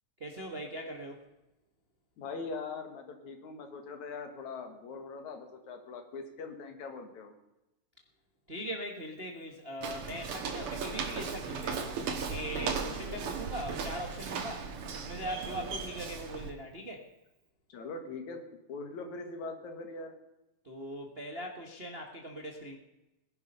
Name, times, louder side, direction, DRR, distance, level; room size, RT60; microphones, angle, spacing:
voice 1, 0.2-1.2 8.5-12.0 12.3-17.1 20.6-22.8, equal, 35° right, 2 dB, 0.9 m, -40 dB
voice 2, 2.2-7.3 12.9-13.2 17.7-18.4 18.7-20.1, left 4 dB, 70° left, 5 dB, 3.0 m, -42 dB
Walk footsteps, 9.8-16.5, right 5 dB, 55° right, 2.1 m, -37 dB
19.5 x 11.0 x 5.5 m, 0.96 s
omnidirectional pair, 3.5 m